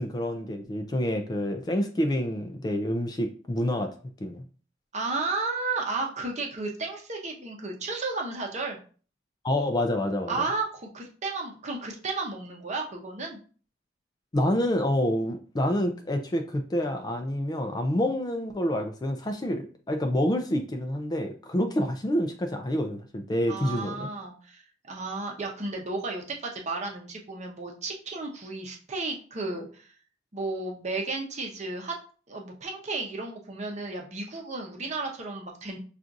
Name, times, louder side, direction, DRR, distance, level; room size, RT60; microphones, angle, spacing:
voice 1, 0.0-3.9 4.2-4.4 9.4-10.3 14.3-24.1, left 1 dB, 20° left, 5 dB, 0.4 m, -27 dB
voice 2, 4.9-8.8 10.3-13.4 23.5-29.9 30.3-31.9 32.3-35.8, right 3 dB, 40° right, 1 dB, 0.8 m, -33 dB
5.8 x 2.5 x 2.6 m, 0.40 s
head